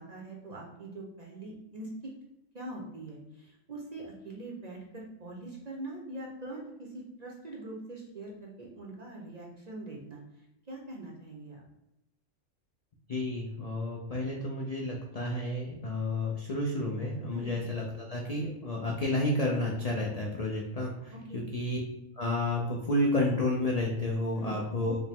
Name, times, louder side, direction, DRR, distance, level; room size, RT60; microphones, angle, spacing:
voice 1, 0.0-1.9 2.5-10.2 10.7-11.6 17.3-17.5 21.1-21.5 24.3-24.6, right 2 dB, 45° right, -2 dB, 0.6 m, -43 dB
voice 2, 13.1-21.8 22.2-25.0, left 1 dB, 75° left, -1 dB, 0.3 m, -31 dB
5.0 x 2.1 x 3.5 m, 0.87 s
omnidirectional pair, 1.4 m